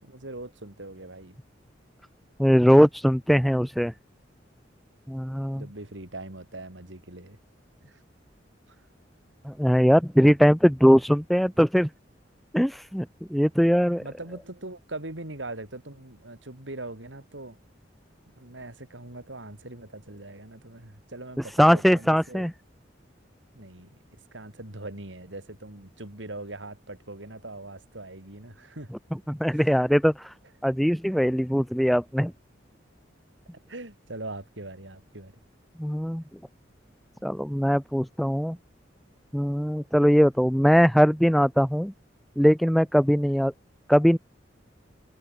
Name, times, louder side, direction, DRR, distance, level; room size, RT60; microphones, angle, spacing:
voice 1, 0.0-1.4 5.5-7.4 7.8-8.0 8.7-8.8 14.0-17.6 18.4-22.5 23.5-24.0 24.3-28.9 29.5-29.7 33.5-35.3, right 2 dB, 85° right, 4.4 m, -41 dB
voice 2, 2.4-3.9 5.1-5.7 9.5-11.9 12.5-13.1 13.3-14.0 21.4-22.5 29.1-30.3 30.6-32.3 35.8-36.2 37.2-38.6 39.3-41.9 42.4-43.5 43.9-44.2, equal, ahead, 0.4 m, -21 dB
head